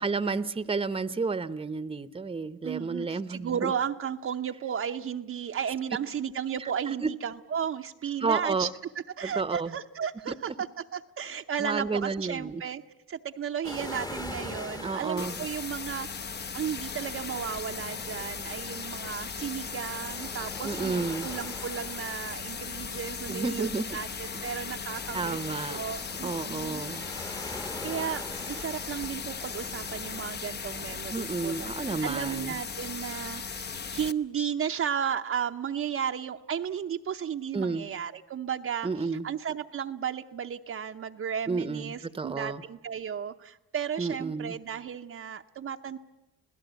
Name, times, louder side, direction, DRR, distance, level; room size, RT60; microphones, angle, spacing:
voice 1, 0.0-3.7 6.6-7.1 8.2-8.7 9.2-9.7 11.6-12.6 14.8-15.3 20.6-21.3 23.3-24.0 25.1-25.9 26.2-27.1 31.1-32.6 37.5-37.9 38.8-39.3 41.5-42.6 44.0-44.6, right 4 dB, 20° right, 15 dB, 0.9 m, -31 dB
voice 2, 2.6-8.7 9.2-12.8 13.1-25.4 25.7-26.8 27.5-46.0, right 8 dB, 45° right, 5 dB, 0.7 m, -34 dB
sound 1, 13.6-31.7, left 1 dB, 15° left, 1.1 m, -44 dB
sound 2, 15.2-34.1, left 5 dB, 35° left, 0.8 m, -37 dB
26.5 x 17.0 x 8.2 m, 1.0 s
cardioid pair, 90°, 30 cm